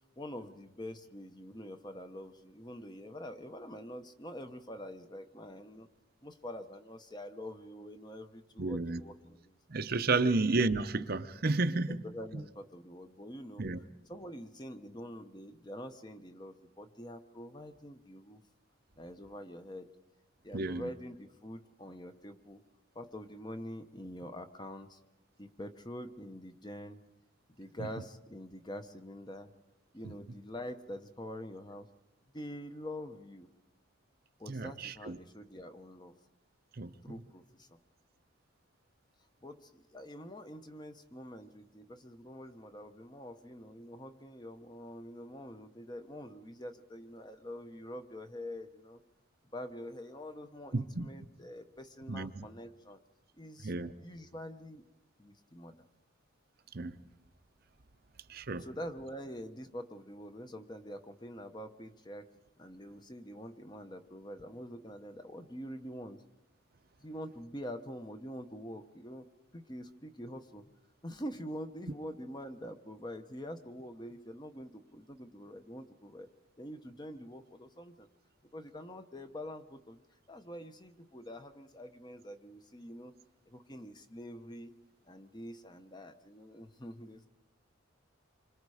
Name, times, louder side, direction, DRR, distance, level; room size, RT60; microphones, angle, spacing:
voice 1, 0.2-5.9 6.2-9.6 10.1-10.3 11.9-13.7 14.1-18.4 19.0-19.9 20.4-22.6 22.9-25.0 25.4-27.0 27.6-29.5 29.9-31.9 32.3-33.5 34.4-36.1 37.0-37.8 39.4-49.0 49.5-53.0 53.4-53.7 54.0-54.8 55.2-55.8 58.6-66.2 67.0-69.3 69.5-70.6 71.0-76.3 76.6-78.1 78.5-80.0 80.3-83.1 83.5-84.7 85.1-87.3, equal, 20° left, 8 dB, 0.9 m, -45 dB
voice 2, 8.6-9.0 9.7-12.0 13.6-13.8 20.5-20.9 34.5-35.2 36.8-37.1 50.7-51.1 52.1-52.5 53.6-53.9 56.7-56.9 58.3-58.6, right 3 dB, 50° right, 9 dB, 0.7 m, -31 dB
27.0 x 25.0 x 4.9 m, 0.99 s
head